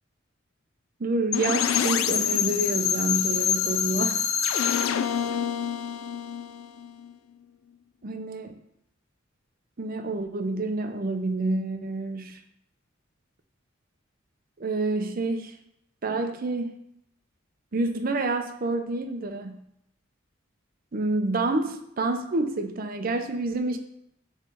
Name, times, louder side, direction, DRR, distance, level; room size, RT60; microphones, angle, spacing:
voice 1, 1.0-4.2 8.0-8.6 9.8-12.4 14.6-15.5 16.0-16.7 17.7-19.6 20.9-23.8, right 2 dB, 45° right, 6 dB, 0.6 m, -28 dB
sound 1, 1.3-7.1, left 8 dB, 85° left, 0.4 m, -26 dB
6.4 x 3.2 x 5.4 m, 0.76 s
head